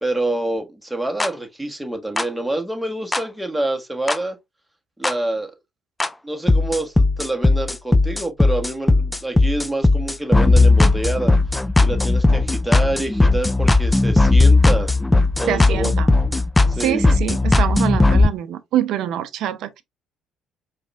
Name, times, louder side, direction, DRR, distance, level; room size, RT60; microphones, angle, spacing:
voice 1, 0.0-4.4 5.0-5.5 6.2-11.3 11.8-14.9 15.4-15.9 16.7-17.0, right 2 dB, 5° right, 1.5 m, -26 dB
sound 1, 1.2-1.3 2.2-2.3 3.1-3.2 4.1-4.2 5.0-5.1 6.0-6.1 6.5-18.3, left 2 dB, 10° left, 0.4 m, -16 dB
voice 2, 15.5-16.1 16.8-19.8, right 11 dB, 65° right, 0.5 m, -25 dB
4.6 x 3.2 x 2.4 m
hypercardioid pair, 55°, 0 cm